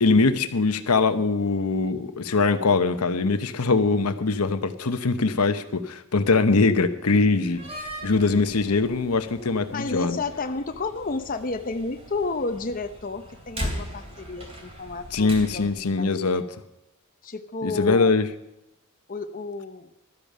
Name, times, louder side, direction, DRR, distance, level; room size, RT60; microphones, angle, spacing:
voice 1, 0.0-7.6 8.0-10.2 15.1-16.4 17.6-18.3, left 3 dB, 85° left, 10 dB, 0.9 m, -22 dB
Slam, 7.4-15.8, equal, 25° right, 2.8 m, -39 dB
voice 2, 9.7-15.6 16.0-16.1 17.2-18.2 19.1-19.9, left 3 dB, 40° left, 7 dB, 0.7 m, -31 dB
13.0 x 10.5 x 5.4 m, 0.86 s
head